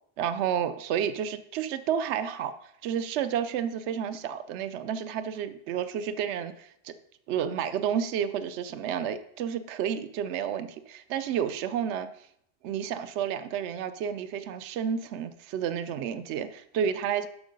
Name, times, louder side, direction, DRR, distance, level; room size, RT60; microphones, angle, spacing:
voice 1, 0.2-6.9 7.3-12.1 12.6-17.3, right 8 dB, 80° right, 12 dB, 0.9 m, -31 dB
12.0 x 4.5 x 5.2 m, 0.71 s
omnidirectional pair, 1.1 m